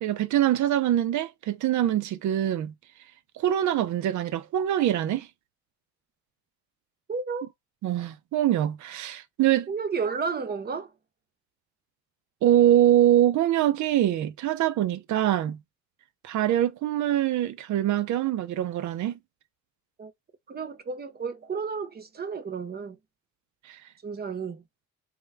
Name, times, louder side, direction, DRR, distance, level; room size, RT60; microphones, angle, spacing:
voice 1, 0.0-2.7 3.4-5.3 7.8-9.7 12.4-15.6 16.2-19.2 23.7-23.8, right 12 dB, 70° right, 0.6 m, -24 dB
voice 2, 7.1-7.5 9.7-10.9 20.0-20.1 20.5-23.0 24.0-24.6, right 5 dB, 30° right, 0.7 m, -32 dB
3.5 x 2.2 x 3.2 m
cardioid pair, 90°, 30 cm